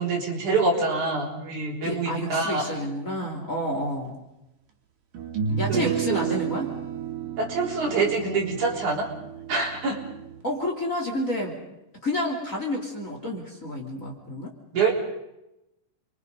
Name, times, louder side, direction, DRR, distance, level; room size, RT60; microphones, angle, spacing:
voice 1, 0.0-2.7 5.7-6.4 7.4-9.1 9.5-10.0 14.7-14.9, right 4 dB, 65° right, -1 dB, 5.3 m, -26 dB
voice 2, 1.8-4.2 5.6-6.7 10.4-11.6 12.0-14.5, left 1 dB, 25° left, 0 dB, 3.2 m, -29 dB
sound 1, 4.1-4.2 5.1-10.4, right 7 dB, 85° right, 4.2 m, -32 dB
28.5 x 24.0 x 5.4 m, 0.92 s
omnidirectional pair, 3.8 m